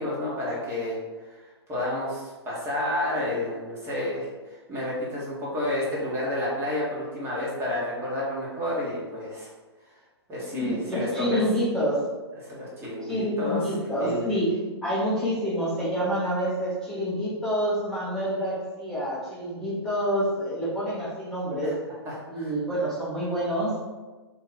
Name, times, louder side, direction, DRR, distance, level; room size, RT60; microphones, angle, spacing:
voice 1, 0.0-9.5 10.3-11.4 12.4-14.3 21.6-21.7 22.0-22.5, left 1 dB, 15° right, -7 dB, 1.3 m, -30 dB
voice 2, 10.5-12.1 13.1-21.8 22.3-23.8, equal, 5° left, -12 dB, 0.9 m, -27 dB
2.9 x 2.8 x 4.0 m, 1.2 s
figure-of-eight pair, 115°, 14 cm